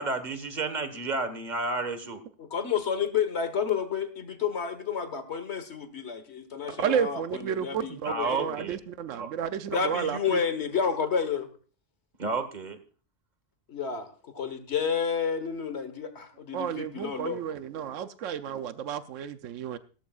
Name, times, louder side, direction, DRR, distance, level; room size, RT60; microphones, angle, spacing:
voice 1, 0.0-2.2 8.0-8.8 9.1-9.3 12.2-12.8, right 3 dB, 40° right, 10 dB, 1.6 m, -31 dB
voice 2, 2.4-8.6 9.7-11.5 13.7-17.4, left 6 dB, 60° left, 10 dB, 1.7 m, -30 dB
voice 3, 6.7-10.4 16.5-19.8, right 8 dB, 85° right, 11 dB, 1.1 m, -32 dB
17.0 x 13.5 x 2.4 m, 0.38 s
omnidirectional pair, 1.3 m